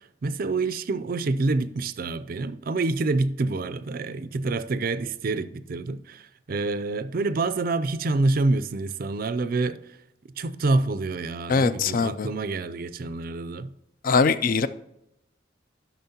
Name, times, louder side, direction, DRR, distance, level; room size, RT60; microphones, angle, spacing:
voice 1, 0.2-9.8 10.4-13.7, right 3 dB, 50° right, 0.4 m, -27 dB
voice 2, 11.5-12.3 14.0-14.7, left 4 dB, 50° left, 0.4 m, -22 dB
12.5 x 6.0 x 2.8 m
head